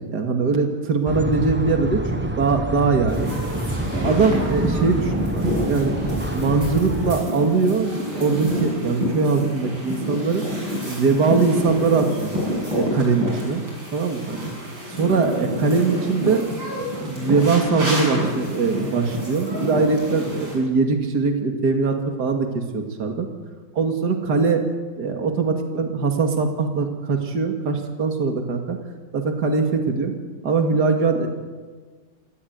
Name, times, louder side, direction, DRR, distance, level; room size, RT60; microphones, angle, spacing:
voice 1, 0.1-3.3 3.9-5.9 6.3-10.4 10.9-12.3 12.7-13.6 13.9-14.4 15.0-16.4 16.9-23.3 23.8-24.7 25.0-28.8 29.1-30.1 30.4-31.3, right 4 dB, 60° right, 4 dB, 2.7 m, -21 dB
sound 1, 1.0-7.2, right 1 dB, 10° right, 0.5 m, -27 dB
sound 2, 3.1-20.5, equal, 90° right, 8.5 m, -28 dB
27.0 x 15.0 x 9.5 m, 1.5 s
omnidirectional pair, 2.0 m